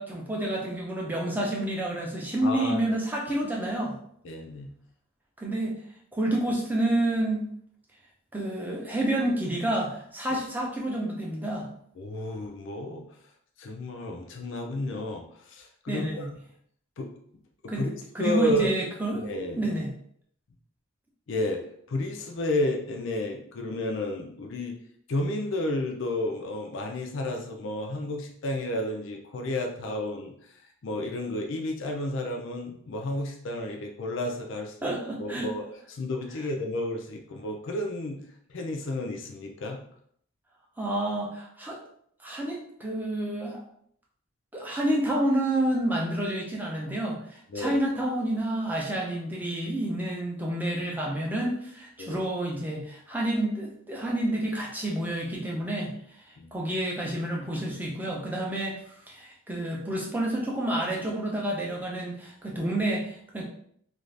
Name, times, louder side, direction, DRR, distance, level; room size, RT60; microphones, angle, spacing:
voice 1, 0.0-4.0 5.4-5.7 6.1-7.5 8.3-11.7 15.9-16.3 17.7-19.2 19.6-19.9 34.8-35.5 40.8-41.8 42.2-43.6 44.5-55.9 56.3-58.8 59.1-63.4, right 1 dB, 10° right, -3 dB, 0.5 m, -29 dB
voice 2, 2.4-2.8 4.2-4.7 12.0-13.0 13.6-16.2 17.0-17.1 17.6-17.9 18.2-18.7 19.2-19.6 21.3-21.6 21.9-24.7 25.1-30.3 30.8-34.9 35.2-35.6 35.9-38.2 38.5-39.8 47.5-47.8 52.0-52.2 56.4-56.5, left 1 dB, 60° left, 2 dB, 0.4 m, -31 dB
2.5 x 2.3 x 3.2 m, 0.65 s
head